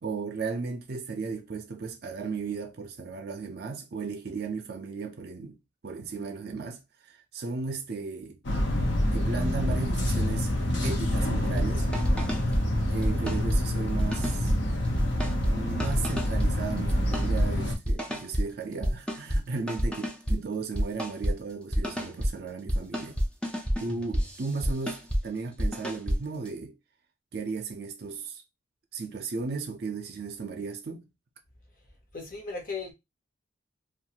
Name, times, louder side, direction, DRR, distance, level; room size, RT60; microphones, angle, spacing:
voice 1, 0.0-5.6 5.8-8.4 9.1-10.5 10.8-11.9 12.9-14.5 15.5-23.2 23.8-26.8 27.3-28.4 28.9-31.1, right 4 dB, 55° right, 0.5 m, -35 dB
sound 1, 8.4-17.7, left 1 dB, 65° left, 0.6 m, -27 dB
sound 2, 11.4-11.7 11.9-12.6 13.0-13.6 14.0-14.6 14.9-15.5 15.8-16.5 16.9-17.5 17.8-18.4 18.8-19.4 19.7-20.4 20.7-21.3 21.7-22.3 22.7-25.2 25.6-26.2, equal, 5° left, 0.4 m, -28 dB
voice 2, 32.1-32.9, left 4 dB, 45° left, 0.9 m, -36 dB
2.5 x 2.2 x 2.8 m
head